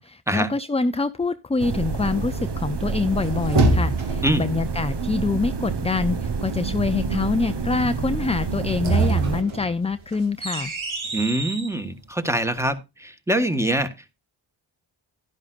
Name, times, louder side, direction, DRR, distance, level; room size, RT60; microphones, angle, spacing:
voice 1, 0.0-10.7, left 3 dB, 15° left, 0.5 m, -25 dB
sound 1, 1.6-9.4, right 4 dB, 60° right, 1.2 m, -28 dB
sound 2, 2.9-4.4 8.5-11.7, right 3 dB, 80° right, 2.4 m, -25 dB
voice 2, 11.1-14.1, right 1 dB, 5° right, 1.5 m, -24 dB
11.5 x 10.5 x 2.5 m
cardioid pair, 50°, 47 cm